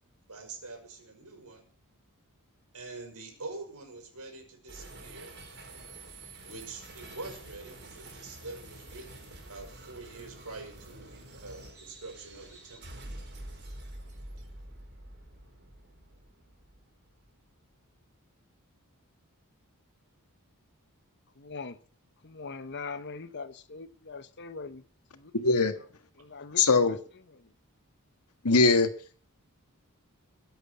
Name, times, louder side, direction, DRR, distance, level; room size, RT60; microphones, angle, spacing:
voice 1, 0.3-1.6 2.7-5.3 6.4-12.8, right 3 dB, 85° right, 5.7 m, -45 dB
sound 1, 4.7-18.0, right 1 dB, 50° right, 4.7 m, -47 dB
voice 2, 21.4-21.8 22.2-24.8 25.1-25.3 26.2-27.0 27.4-27.5, left 4 dB, 50° left, 1.1 m, -41 dB
voice 3, 25.3-25.7 26.6-27.0 28.4-28.9, left 3 dB, 80° left, 1.7 m, -21 dB
22.0 x 8.2 x 5.6 m
head